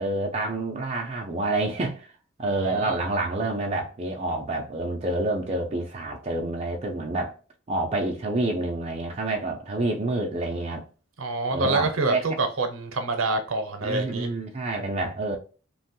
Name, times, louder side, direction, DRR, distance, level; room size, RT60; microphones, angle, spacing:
voice 1, 0.0-2.1 2.4-7.3 7.7-10.9 11.5-12.2 13.8-15.4, right 2 dB, 30° right, 0.4 m, -28 dB
voice 2, 2.7-3.0 11.2-14.3, right 3 dB, 75° right, 0.7 m, -27 dB
2.9 x 2.2 x 2.9 m
head